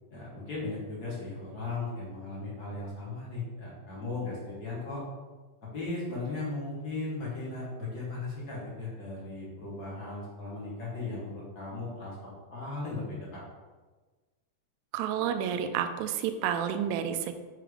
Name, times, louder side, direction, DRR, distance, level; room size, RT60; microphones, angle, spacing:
voice 1, 0.1-5.0 5.7-13.4, left 3 dB, 45° left, -6 dB, 1.4 m, -37 dB
voice 2, 14.9-17.4, right 9 dB, 80° right, 8 dB, 1.7 m, -30 dB
6.6 x 2.9 x 4.9 m, 1.3 s
omnidirectional pair, 3.7 m